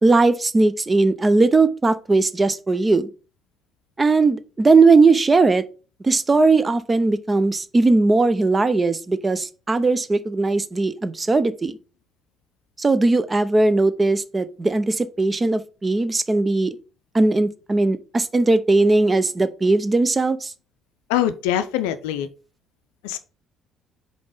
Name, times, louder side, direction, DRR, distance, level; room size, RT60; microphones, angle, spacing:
voice 1, 0.0-3.1 4.0-5.6 6.0-11.8 12.8-16.8 17.1-20.5, right 3 dB, 25° right, 0.6 m, -18 dB
voice 2, 21.1-22.3 23.0-23.2, left 11 dB, 70° left, 0.5 m, -23 dB
5.2 x 4.0 x 5.0 m
figure-of-eight pair, 50°, 0 cm